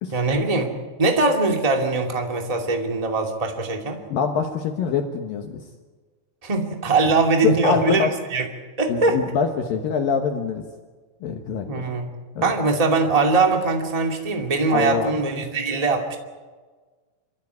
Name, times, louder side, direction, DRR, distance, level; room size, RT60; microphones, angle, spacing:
voice 1, 0.1-0.7 1.0-4.0 6.4-8.4 8.8-9.2 11.6-12.1 12.4-16.2, right 3 dB, 20° right, 3 dB, 1.1 m, -21 dB
voice 2, 4.1-5.6 7.4-8.1 8.9-10.6 11.2-11.8 12.4-12.5 14.7-15.2, left 6 dB, 65° left, 4 dB, 2.5 m, -24 dB
27.0 x 15.0 x 9.6 m, 1.4 s
omnidirectional pair, 5.2 m